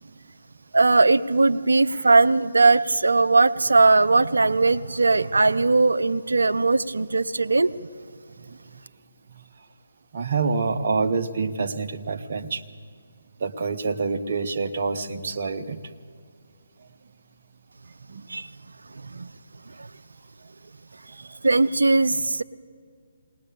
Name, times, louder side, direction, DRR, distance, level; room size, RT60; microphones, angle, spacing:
voice 1, 0.7-7.7 18.3-18.5 19.1-19.3 21.4-22.4, right 3 dB, 80° right, 12 dB, 0.6 m, -19 dB
voice 2, 10.1-12.6 13.4-15.8 18.1-18.3, right 4 dB, 50° right, 7 dB, 1.0 m, -27 dB
20.0 x 19.5 x 6.9 m, 2.1 s
figure-of-eight pair, 150°, 0 cm